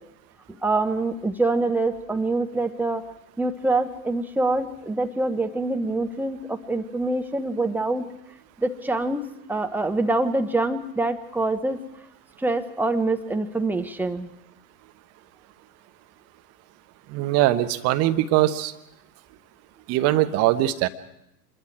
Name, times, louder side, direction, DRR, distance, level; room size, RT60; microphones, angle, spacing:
voice 1, 0.6-3.0 3.4-8.0 8.6-11.8 12.4-14.3, right 2 dB, 5° right, 5 dB, 1.0 m, -25 dB
voice 2, 17.1-18.7 19.9-20.9, right 14 dB, 30° right, 9 dB, 1.1 m, -21 dB
26.0 x 21.5 x 4.8 m, 0.85 s
figure-of-eight pair, 95°, 48 cm